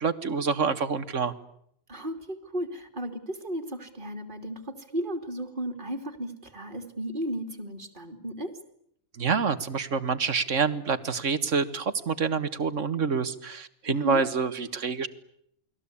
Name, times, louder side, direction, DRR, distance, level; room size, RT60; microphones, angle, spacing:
voice 1, 0.0-1.3 9.2-15.1, right 5 dB, 55° right, 12 dB, 1.8 m, -27 dB
voice 2, 1.9-8.6 14.0-14.2, right 1 dB, 35° right, 4 dB, 3.0 m, -34 dB
29.5 x 21.0 x 8.6 m, 0.70 s
omnidirectional pair, 1.5 m